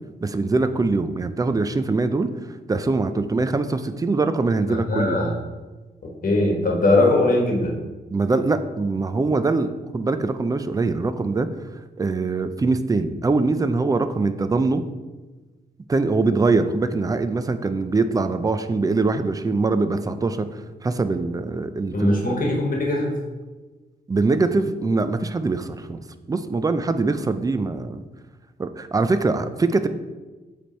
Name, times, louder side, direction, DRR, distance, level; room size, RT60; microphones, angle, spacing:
voice 1, 0.2-2.3 2.7-5.2 8.1-11.5 12.0-14.8 15.9-22.1 24.1-26.0 26.3-28.0 28.6-29.9, right 3 dB, 20° right, 10 dB, 0.4 m, -23 dB
voice 2, 4.7-5.3 6.2-7.8 21.9-23.1, left 2 dB, 50° left, -1 dB, 1.3 m, -20 dB
7.7 x 3.4 x 4.4 m, 1.2 s
cardioid pair, 105°, 18 cm